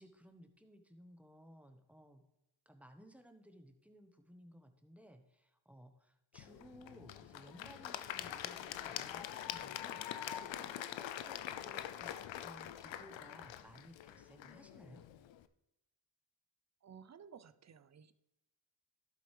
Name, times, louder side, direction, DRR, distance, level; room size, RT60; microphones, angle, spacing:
voice 1, 0.0-2.2 2.6-12.1 12.4-15.0, equal, 5° right, 6 dB, 1.1 m, -59 dB
Applause / Crowd, 6.3-15.4, left 11 dB, 85° left, 0.6 m, -44 dB
voice 2, 16.8-18.1, right 7 dB, 40° right, 14 dB, 0.6 m, -56 dB
11.5 x 7.5 x 3.3 m, 0.89 s
cardioid pair, 70°, 44 cm